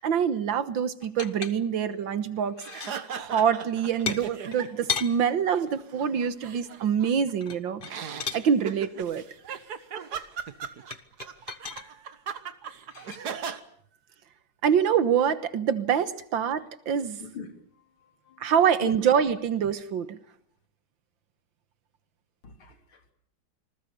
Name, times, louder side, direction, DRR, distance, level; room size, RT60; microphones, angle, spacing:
voice 1, 0.0-7.8 8.3-9.2 14.6-17.2 18.4-20.2, right 8 dB, 70° right, 13 dB, 1.9 m, -25 dB
sound 1, 1.0-1.9 2.4-3.0 4.1-5.1 7.4-8.4 10.9-11.9 12.9-13.2, left 6 dB, 35° left, 0.9 m, -34 dB
sound 2, 2.7-5.0 5.3-7.3 7.8-13.6, right 7 dB, 55° right, 1.7 m, -38 dB
voice 2, 17.7-18.5 18.8-18.9 22.4-23.1, left 5 dB, 90° left, 6 dB, 3.7 m, -42 dB
27.0 x 21.0 x 6.9 m, 0.63 s
omnidirectional pair, 2.3 m